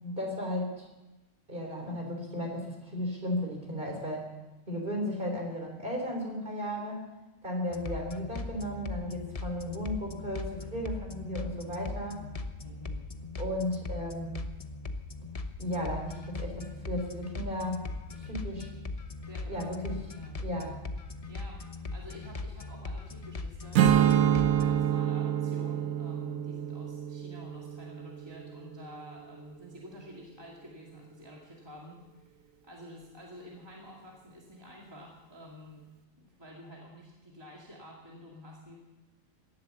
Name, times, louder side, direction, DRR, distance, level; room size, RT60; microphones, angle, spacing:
voice 1, 0.0-0.9 1.5-4.3 4.7-7.1 7.4-12.2 13.4-14.4 15.6-17.8 18.1-18.7 19.5-20.0 20.4-20.8, left 1 dB, 40° right, 1 dB, 3.8 m, -35 dB
sound 1, 7.7-24.9, left 3 dB, 30° left, 0.9 m, -39 dB
voice 2, 12.6-13.1 19.3-20.4 21.3-21.6 21.9-32.4 32.6-35.8 36.2-38.8, equal, 20° right, -3 dB, 2.4 m, -49 dB
Strum, 23.7-29.1, right 10 dB, 90° right, 1.2 m, -27 dB
17.5 x 11.5 x 7.0 m, 1.1 s
omnidirectional pair, 1.4 m